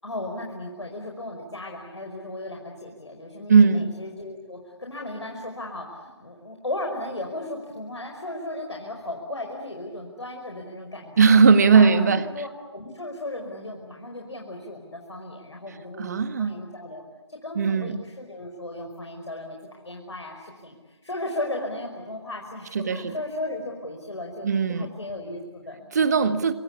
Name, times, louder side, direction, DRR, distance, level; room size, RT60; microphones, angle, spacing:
voice 1, 0.0-11.4 11.7-17.0 17.3-25.9, left 1 dB, 75° left, 1 dB, 5.2 m, -36 dB
voice 2, 3.5-4.0 11.2-12.2 16.0-16.6 17.5-18.0 22.7-23.1 24.4-24.9 25.9-26.5, right 5 dB, 35° right, 11 dB, 1.7 m, -18 dB
28.0 x 24.0 x 8.6 m, 1.3 s
figure-of-eight pair, 155°, 15 cm